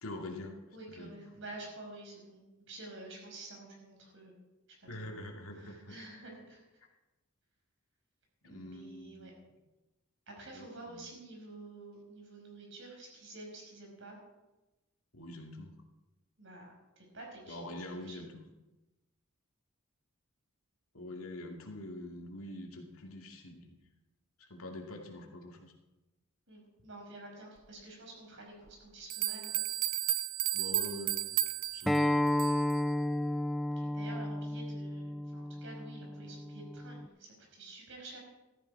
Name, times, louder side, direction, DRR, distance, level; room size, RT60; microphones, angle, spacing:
voice 1, 0.0-0.6 0.9-1.1 4.9-6.0 8.4-9.3 10.5-11.0 15.1-15.7 17.5-18.4 20.9-23.7 24.4-25.7 30.5-31.4 31.7-32.0, left 1 dB, 80° left, 2 dB, 2.4 m, -44 dB
voice 2, 0.7-4.3 5.0-5.1 5.5-6.6 8.4-9.3 10.3-14.2 16.4-18.2 26.5-29.6 33.7-38.2, right 2 dB, 60° right, 0 dB, 5.5 m, -49 dB
sound 1, 28.7-28.8 29.1-32.8, right 14 dB, 85° right, 0.7 m, -33 dB
Acoustic guitar, 31.9-37.1, left 1 dB, ahead, 0.4 m, -32 dB
15.0 x 13.5 x 4.8 m, 1.1 s
head